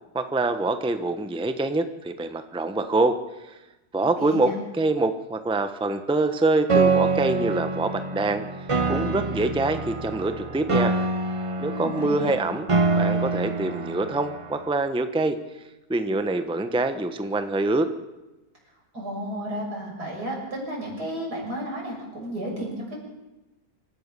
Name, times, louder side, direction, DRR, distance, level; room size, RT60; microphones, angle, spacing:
voice 1, 0.1-3.2 3.4-3.6 3.9-8.4 8.9-10.9 11.6-15.4 15.9-17.9, right 2 dB, 5° right, 8 dB, 0.9 m, -25 dB
voice 2, 4.2-4.5 11.7-12.4 18.9-23.0, equal, 80° right, -1 dB, 7.2 m, -33 dB
Piano, 6.7-14.7, right 3 dB, 30° right, 0.6 m, -26 dB
26.5 x 14.5 x 6.9 m, 1.0 s
omnidirectional pair, 1.7 m